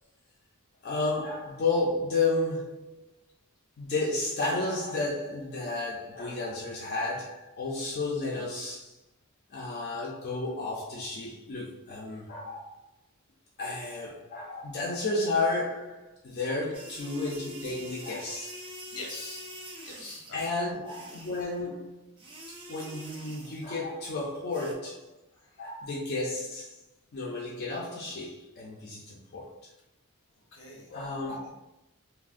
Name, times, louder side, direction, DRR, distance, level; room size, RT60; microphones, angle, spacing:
voice 1, 0.8-3.1 3.8-9.0 9.5-12.8 13.6-18.7 20.3-22.1 22.7-25.2 25.6-26.8 27.1-29.5 30.9-31.5, left 3 dB, 50° left, -5 dB, 0.4 m, -32 dB
sound 1, 16.7-20.4 20.9-21.6 22.2-23.8 24.5-24.7, right 1 dB, 25° right, 0.4 m, -45 dB
voice 2, 18.9-19.6 19.8-20.5 25.3-25.6 30.5-31.5, left 2 dB, 80° left, -2 dB, 0.8 m, -45 dB
3.2 x 2.1 x 2.4 m, 0.89 s
head